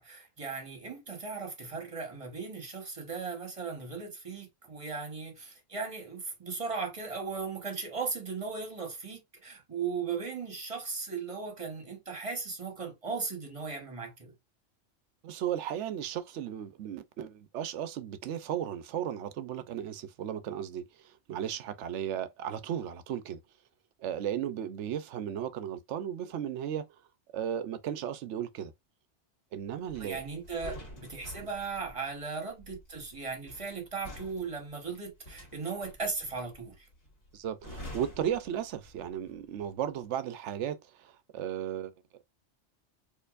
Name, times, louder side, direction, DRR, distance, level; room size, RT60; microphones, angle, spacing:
voice 1, 0.0-14.3 30.0-36.9, right 4 dB, 30° right, 1.2 m, -37 dB
voice 2, 15.2-23.4 24.0-26.8 27.3-28.7 29.5-30.2 37.3-41.9, right 10 dB, 75° right, 0.9 m, -35 dB
sound 1, 29.9-39.2 39.5-39.8, equal, 55° left, 1.8 m, -48 dB
4.5 x 2.8 x 2.4 m
omnidirectional pair, 1.2 m